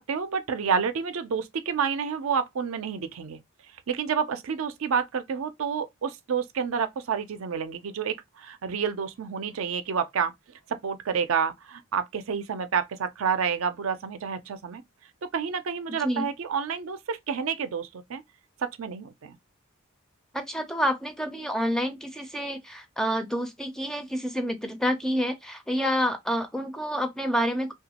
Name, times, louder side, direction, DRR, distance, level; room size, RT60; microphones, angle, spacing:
voice 1, 0.0-3.4 3.9-10.3 10.7-14.8 15.2-18.2 18.6-19.4, right 6 dB, 80° right, 0.5 m, -29 dB
voice 2, 20.3-27.7, equal, 5° left, 0.4 m, -28 dB
2.9 x 2.3 x 2.8 m
head